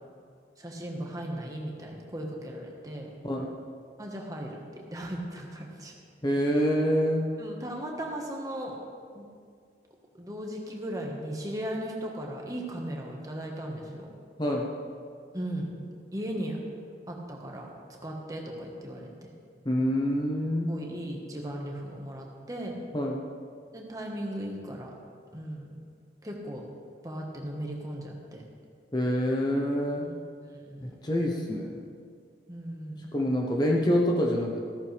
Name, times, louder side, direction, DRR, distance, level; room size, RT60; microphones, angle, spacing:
voice 1, 0.6-3.1 4.0-4.6 4.9-5.9 7.4-8.8 9.1-9.3 10.1-14.1 15.3-15.7 16.1-16.6 17.1-17.7 18.0-19.3 20.7-22.8 23.7-24.9 25.3-25.8 26.2-26.7 27.0-28.4 30.0-30.9 32.5-33.1, right 1 dB, 20° right, 0 dB, 1.4 m, -37 dB
voice 2, 6.2-7.3 14.4-14.7 19.7-20.8 22.9-23.2 28.9-30.1 30.8-31.7 33.1-34.7, equal, 25° left, 0 dB, 0.8 m, -26 dB
14.0 x 13.5 x 3.4 m, 2.2 s
head